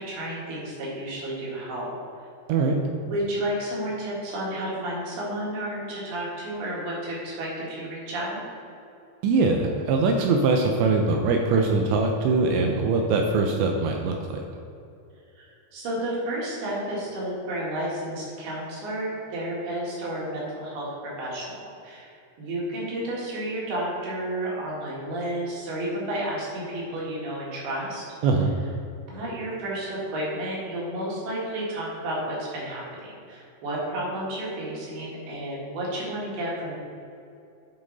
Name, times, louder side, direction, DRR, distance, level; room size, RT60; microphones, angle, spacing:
voice 1, 0.0-1.9 3.1-8.4 15.4-22.1 22.4-28.1 29.1-36.8, right 1 dB, 60° right, -5 dB, 3.5 m, -31 dB
voice 2, 9.2-14.4 28.2-28.5, right 3 dB, 80° right, 2 dB, 2.7 m, -22 dB
10.5 x 5.1 x 4.0 m, 2.6 s
omnidirectional pair, 5.4 m